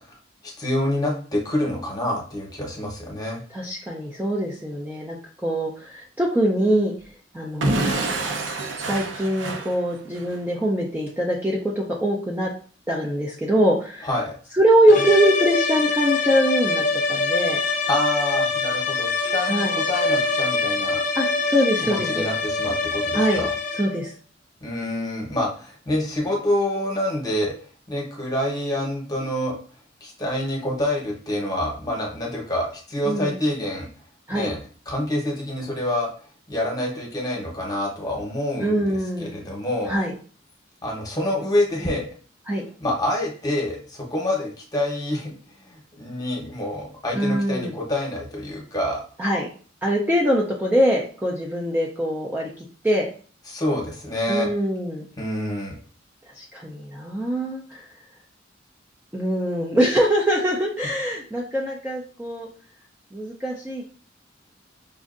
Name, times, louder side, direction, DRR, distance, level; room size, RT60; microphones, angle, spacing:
voice 1, 0.4-3.4 14.0-14.3 17.9-21.0 21.8-23.5 24.6-27.5 27.9-29.6 30.0-33.9 34.3-34.6 34.9-36.1 36.5-39.9 40.8-42.1 42.8-45.3 45.6-49.0 53.5-54.5 55.2-55.7, left 1 dB, 20° left, -1 dB, 0.9 m, -27 dB
voice 2, 3.5-6.9 7.3-8.1 8.8-12.5 12.9-14.1 14.6-17.6 19.5-19.7 21.2-22.3 23.1-23.4 23.8-24.1 33.1-33.3 34.3-34.5 38.6-39.3 39.9-40.1 42.5-42.6 47.2-47.7 49.2-49.5 49.8-53.1 54.3-55.1 56.3-57.9 59.1-62.5 63.1-63.9, equal, 10° right, -3 dB, 0.4 m, -23 dB
Explosion / Shatter, 7.6-10.4, right 2 dB, 70° right, 0.6 m, -27 dB
sound 1, 14.9-24.1, left 3 dB, 45° left, 0.5 m, -24 dB
5.1 x 2.5 x 2.5 m, 0.41 s
head